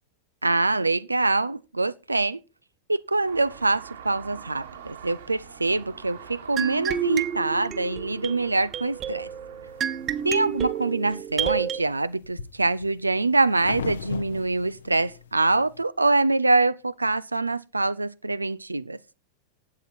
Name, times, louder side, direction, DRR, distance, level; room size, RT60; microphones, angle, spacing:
voice 1, 0.4-2.4 2.9-9.3 10.2-19.0, right 3 dB, 80° right, 0.5 m, -24 dB
sound 1, 3.2-10.7, right 7 dB, 65° right, 2.3 m, -45 dB
sound 2, 6.6-11.8, right 9 dB, 30° right, 0.9 m, -30 dB
sound 3, 9.8-10.5 11.0-15.8, left 6 dB, 70° left, 1.0 m, -38 dB
12.0 x 8.4 x 4.3 m
figure-of-eight pair, 90°, 0 cm